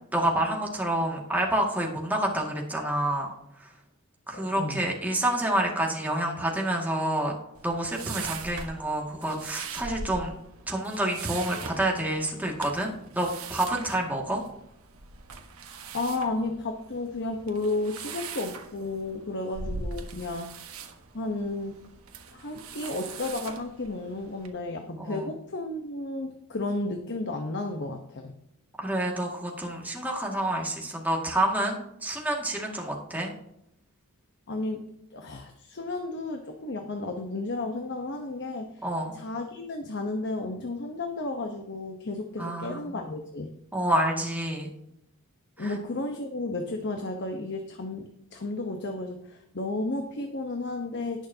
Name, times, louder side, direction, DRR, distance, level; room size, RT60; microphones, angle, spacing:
voice 1, 0.1-3.3 3.6-3.7 4.3-7.3 7.6-10.4 10.7-14.4 25.0-25.3 28.8-33.3 38.8-39.1 42.4-42.8 43.7-44.7 45.6-45.7, right 1 dB, 10° right, -1 dB, 2.1 m, -28 dB
voice 2, 4.3-4.8 15.9-20.5 21.1-21.8 22.3-28.3 34.5-38.8 39.1-43.5 45.6-51.3, left 2 dB, 50° left, 4 dB, 1.0 m, -33 dB
sound 1, 7.5-24.5, right 5 dB, 70° right, 1.3 m, -41 dB
18.5 x 6.5 x 2.8 m, 0.81 s
head